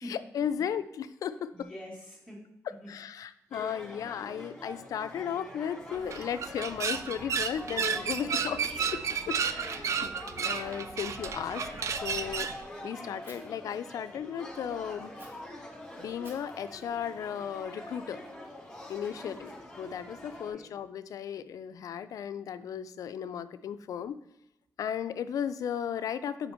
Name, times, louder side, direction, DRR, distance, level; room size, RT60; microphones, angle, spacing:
voice 1, 0.1-1.7 2.9-8.6 8.9-9.0 9.3-10.1 10.4-12.5 12.8-15.1 16.0-18.2 18.9-19.5 19.8-24.2 24.8-26.5, left 8 dB, 70° left, 12 dB, 0.3 m, -35 dB
voice 2, 1.5-2.4 2.8-2.9 8.2-8.9 9.3-10.0 19.1-19.6 20.3-20.7, equal, 5° right, -5 dB, 2.1 m, -48 dB
sound 1, 3.5-20.5, left 1 dB, 10° left, 1.5 m, -45 dB
sound 2, 5.9-12.6, right 7 dB, 55° right, 0.4 m, -32 dB
Fire, 13.2-13.4 15.1-15.3 16.2-18.2, right 1 dB, 35° right, 1.8 m, -56 dB
5.2 x 4.3 x 4.3 m, 0.85 s
cardioid pair, 90°, 6 cm